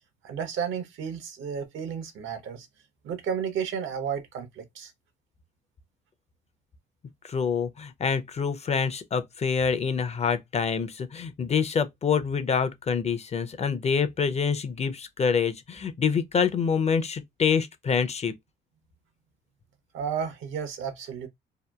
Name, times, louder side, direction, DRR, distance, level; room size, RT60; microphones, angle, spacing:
voice 1, 0.2-2.7 3.0-4.9 19.9-21.3, right 7 dB, 80° right, 0.7 m, -32 dB
voice 2, 7.2-18.3, left 6 dB, 35° left, 0.4 m, -26 dB
2.8 x 2.2 x 2.2 m
cardioid pair, 90°, 20 cm